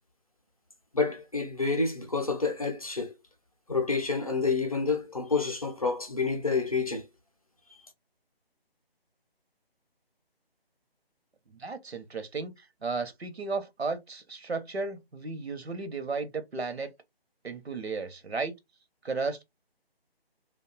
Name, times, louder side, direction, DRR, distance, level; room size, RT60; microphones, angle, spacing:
voice 1, 0.9-3.1 3.7-7.0, left 4 dB, 35° left, 0.5 m, -28 dB
voice 2, 11.5-16.9 17.4-18.5 19.0-19.4, right 4 dB, 85° right, 0.7 m, -34 dB
2.5 x 2.2 x 2.2 m
figure-of-eight pair, 155°, 31 cm